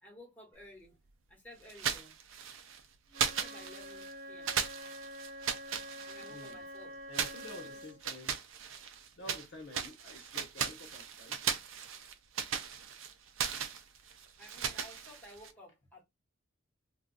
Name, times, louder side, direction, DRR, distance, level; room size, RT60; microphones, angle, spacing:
voice 1, 0.0-1.0 1.3-2.2 3.3-4.5 5.0-5.8 6.0-7.2 7.6-7.8 14.2-16.0, left 1 dB, 10° left, 1.2 m, -55 dB
sound 1, 1.7-2.8 3.1-4.1 4.5-6.5 7.1-9.5 9.7-15.5, right 7 dB, 75° right, 0.4 m, -37 dB
Wind instrument woodwind instrument, 3.1-8.1, equal, 55° right, 1.3 m, -47 dB
voice 2, 6.3-6.6 7.1-8.3 9.1-11.4, left 1 dB, 65° left, 1.0 m, -49 dB
2.4 x 2.3 x 3.8 m
head